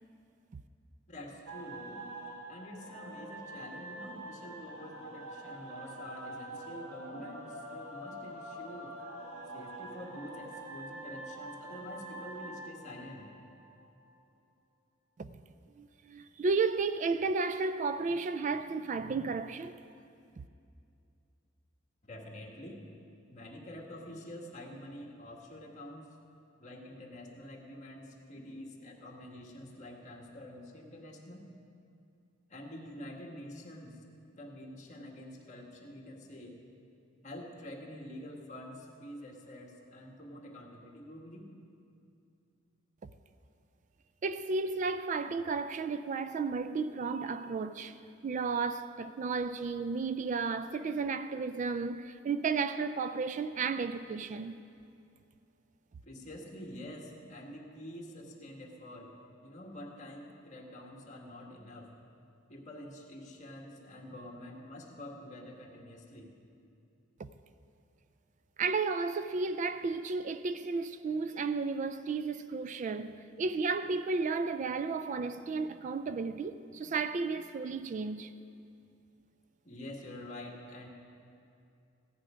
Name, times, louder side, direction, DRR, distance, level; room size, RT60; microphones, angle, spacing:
voice 1, 1.1-2.1 2.5-9.0 9.5-13.3 22.0-22.9 23.3-26.1 26.6-31.5 32.5-34.0 34.4-36.6 37.2-41.5 56.0-59.2 59.4-61.9 62.5-66.3 79.6-80.9, left 1 dB, 35° left, 1.9 m, -47 dB
sound 1, 1.5-14.0, right 1 dB, 85° right, 2.1 m, -45 dB
voice 2, 15.8-19.7 44.2-48.0 48.2-54.6 68.6-78.3, right 4 dB, 40° right, 0.3 m, -33 dB
16.0 x 10.0 x 5.1 m
head